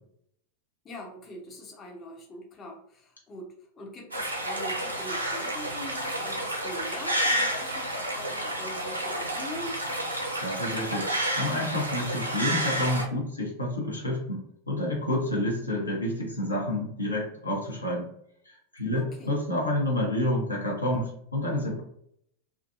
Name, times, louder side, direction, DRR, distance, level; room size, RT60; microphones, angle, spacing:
voice 1, 0.8-9.8 18.9-19.3, left 1 dB, 25° left, 0 dB, 0.6 m, -42 dB
sound 1, 4.1-13.1, right 1 dB, 85° right, 0.6 m, -30 dB
voice 2, 10.4-11.1 11.4-18.1 18.5-21.8, left 1 dB, 80° left, -3 dB, 0.9 m, -29 dB
2.5 x 2.4 x 2.6 m, 0.69 s
figure-of-eight pair, 90°, 0 cm